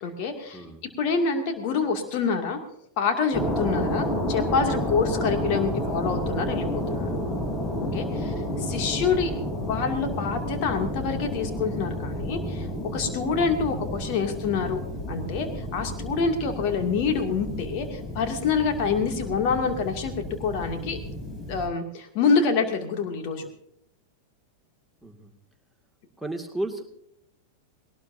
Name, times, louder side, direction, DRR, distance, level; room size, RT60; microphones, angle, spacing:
voice 1, 0.0-0.6 1.0-2.6 3.0-7.1 7.8-9.3 9.6-14.8 15.1-21.0 21.5-23.5, left 5 dB, 45° left, 5 dB, 2.5 m, -26 dB
voice 2, 0.5-0.8 8.2-8.6 25.0-25.3 26.2-26.8, right 1 dB, ahead, 6 dB, 2.3 m, -34 dB
sound 1, 3.3-21.7, equal, 20° left, 3.6 m, -31 dB
20.0 x 18.5 x 2.7 m, 0.73 s
figure-of-eight pair, 90°, 0 cm